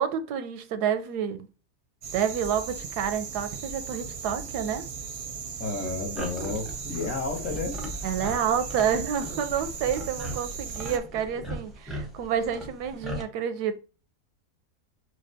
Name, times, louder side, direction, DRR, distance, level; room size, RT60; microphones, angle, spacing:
voice 1, 0.0-1.5 2.1-4.8 8.0-13.8, right 8 dB, 85° right, 1.1 m, -29 dB
sound 1, 2.0-11.0, right 6 dB, 60° right, 0.7 m, -37 dB
voice 2, 5.6-7.8, left 3 dB, 60° left, 1.3 m, -32 dB
sound 2, 6.1-13.2, equal, ahead, 0.5 m, -38 dB
6.1 x 2.2 x 2.6 m
omnidirectional pair, 1.7 m